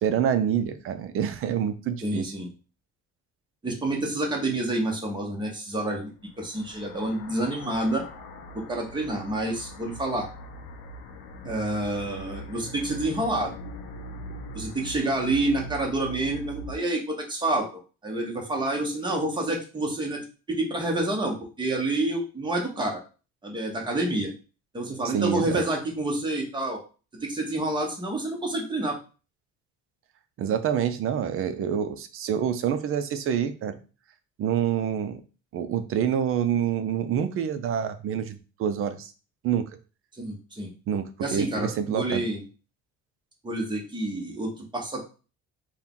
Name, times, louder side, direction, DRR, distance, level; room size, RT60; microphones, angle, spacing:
voice 1, 0.0-2.3 25.0-25.6 30.4-33.7 34.4-35.2 35.5-39.1 39.4-39.6 40.9-41.0 41.3-42.3, right 8 dB, 45° right, 10 dB, 0.5 m, -27 dB
voice 2, 2.0-2.5 3.6-6.1 6.4-8.0 8.5-10.3 11.4-13.5 14.5-17.7 18.0-23.0 23.4-24.3 24.7-26.8 27.2-29.0 40.2-40.7 41.2-42.4 43.4-45.0, right 2 dB, 15° right, 0 dB, 0.9 m, -28 dB
sound 1, 6.2-16.8, left 1 dB, 90° left, 0.7 m, -41 dB
4.3 x 2.3 x 3.6 m, 0.34 s
cardioid pair, 155°, 30 cm